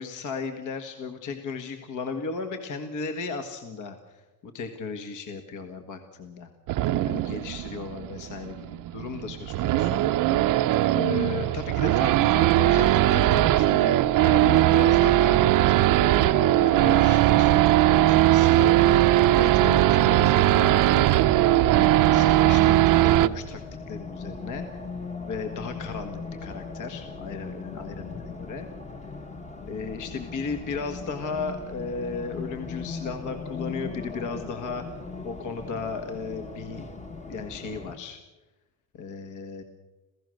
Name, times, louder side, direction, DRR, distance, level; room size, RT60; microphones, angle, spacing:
voice 1, 0.0-6.5 7.1-10.0 10.9-15.4 15.7-19.0 19.3-24.8 25.3-28.7 29.0-29.2 29.7-36.9 37.3-38.2 38.9-39.6, left 4 dB, 50° left, 6 dB, 1.7 m, -35 dB
Race car auto racing / Idling / Accelerating revving vroom, 6.7-23.3, right 14 dB, 55° right, 0.7 m, -20 dB
Race car auto racing, 21.4-38.0, left 4 dB, 20° left, 1.3 m, -39 dB
28.0 x 16.0 x 6.5 m, 1.1 s
cardioid pair, 170°, 38 cm